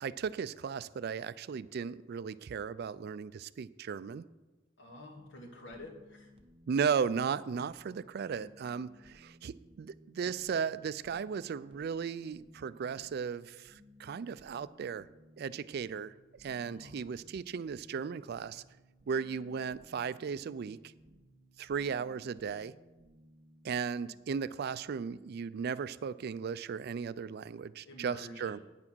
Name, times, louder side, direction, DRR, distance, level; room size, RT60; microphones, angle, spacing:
voice 1, 0.0-4.2 6.7-15.1 15.4-16.1 16.4-18.6 19.1-20.8 21.6-22.7 23.6-28.6, right 6 dB, 60° right, 17 dB, 0.3 m, -36 dB
voice 2, 4.8-6.3 16.6-17.0 27.8-28.6, left 1 dB, 75° left, 1 dB, 1.9 m, -48 dB
sound 1, 5.2-24.1, equal, 30° right, 1.0 m, -60 dB
8.9 x 6.0 x 6.1 m, 1.2 s
head